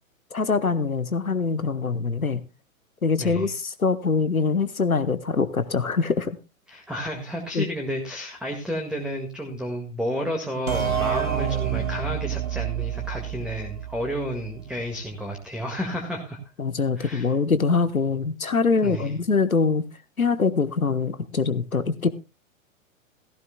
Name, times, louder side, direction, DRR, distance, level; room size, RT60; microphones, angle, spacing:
voice 1, 0.3-2.4 3.0-6.4 7.5-7.7 16.6-19.8 20.2-22.1, left 4 dB, 90° left, 1.1 m, -23 dB
voice 2, 6.7-16.4 17.0-17.3 18.8-19.1, equal, ahead, 1.9 m, -31 dB
sound 1, 10.7-14.2, right 9 dB, 80° right, 2.6 m, -28 dB
17.5 x 15.0 x 2.2 m
figure-of-eight pair, 105°, 41 cm